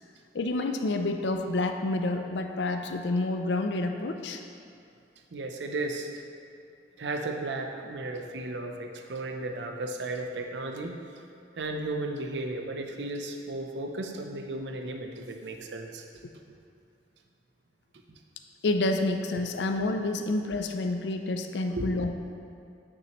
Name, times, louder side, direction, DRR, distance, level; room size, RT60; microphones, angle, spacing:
voice 1, 0.3-4.4 18.6-22.1, left 2 dB, 75° left, 5 dB, 0.5 m, -28 dB
voice 2, 5.3-6.1 7.0-11.0 11.6-16.0 18.1-18.2 21.7-21.9, right 2 dB, 80° right, 4 dB, 0.7 m, -34 dB
8.9 x 6.1 x 3.0 m, 2.5 s
head